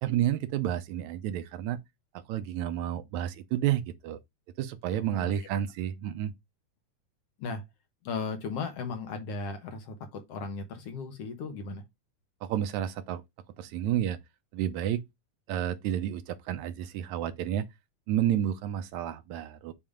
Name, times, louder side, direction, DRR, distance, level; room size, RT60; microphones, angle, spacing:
voice 1, 0.0-1.8 2.3-4.2 4.6-6.3 12.4-13.2 13.6-14.2 14.5-15.0 15.5-17.7 18.1-19.7, right 11 dB, 80° right, 2.0 m, -30 dB
voice 2, 4.9-5.4 7.4-7.6 8.0-11.8, left 4 dB, 60° left, 1.9 m, -36 dB
7.3 x 2.8 x 4.9 m
omnidirectional pair, 3.4 m